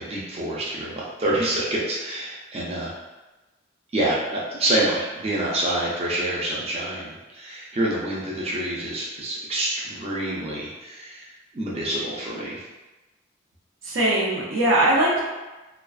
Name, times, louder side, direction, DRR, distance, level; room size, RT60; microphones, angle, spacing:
voice 1, 0.0-2.9 3.9-11.3 11.5-12.6, right 1 dB, 30° right, -6 dB, 0.4 m, -27 dB
voice 2, 13.8-15.2, right 1 dB, 90° right, -5 dB, 0.7 m, -20 dB
2.3 x 2.3 x 2.3 m, 1.1 s
head